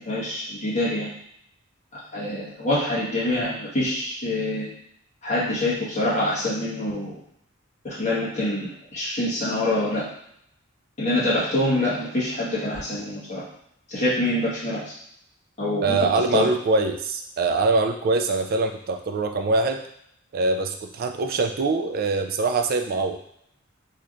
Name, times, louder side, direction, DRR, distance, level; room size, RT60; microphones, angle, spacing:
voice 1, 0.0-1.1 2.1-4.7 5.2-7.2 7.8-10.0 11.0-13.4 13.9-14.8 15.6-16.0 16.3-16.5, left 1 dB, 35° left, -9 dB, 1.4 m, -25 dB
voice 2, 15.8-19.8 20.3-23.2, right 3 dB, 50° right, 5 dB, 0.3 m, -23 dB
3.3 x 2.9 x 2.5 m, 0.73 s
head